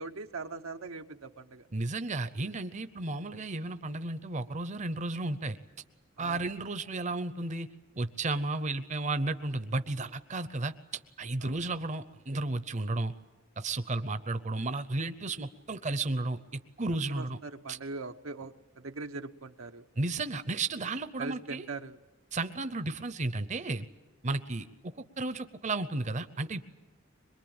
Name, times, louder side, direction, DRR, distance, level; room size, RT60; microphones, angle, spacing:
voice 1, 0.0-1.7 6.2-6.4 11.4-11.7 16.9-19.8 21.2-22.0, right 3 dB, 90° right, 7 dB, 1.0 m, -41 dB
voice 2, 1.7-5.6 6.2-7.7 8.0-10.7 11.2-13.1 13.6-17.4 17.7-17.8 20.0-21.7 22.3-23.9 24.2-24.7 25.2-26.6, right 2 dB, 35° right, 11 dB, 0.7 m, -33 dB
23.0 x 22.0 x 8.8 m, 1.2 s
head